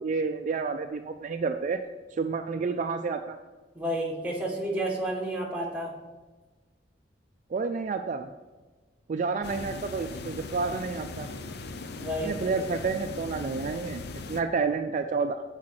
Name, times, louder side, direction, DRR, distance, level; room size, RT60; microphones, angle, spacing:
voice 1, 0.0-1.8 2.1-3.4 7.5-8.3 9.1-11.3 12.1-14.0 14.3-15.4, right 4 dB, 45° right, 6 dB, 0.4 m, -30 dB
voice 2, 3.7-5.9 12.0-12.5, right 1 dB, 10° right, -3 dB, 1.6 m, -31 dB
sound 1, 9.4-14.4, left 3 dB, 65° left, 0.6 m, -39 dB
7.6 x 4.8 x 5.8 m, 1.3 s
head